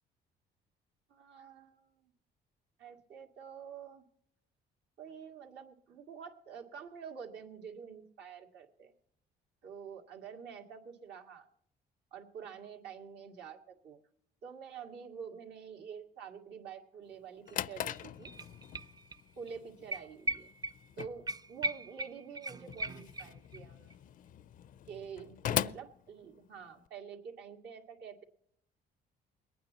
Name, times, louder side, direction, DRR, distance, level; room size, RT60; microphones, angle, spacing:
voice 1, 1.1-2.1 2.8-4.0 5.0-8.9 9.6-11.5 12.1-14.0 14.4-18.3 19.4-20.5 21.0-23.9 24.9-28.2, right 7 dB, 75° right, 2 dB, 2.1 m, -48 dB
Drawer open or close, 17.1-26.9, left 11 dB, 50° left, 0.4 m, -41 dB
sound 1, 17.5-17.6 17.8-19.2 19.5-19.6 19.9-23.6 23.9-24.0, right 2 dB, 20° right, 0.4 m, -39 dB
21.5 x 9.3 x 4.2 m, 0.71 s
cardioid pair, 115°, 18 cm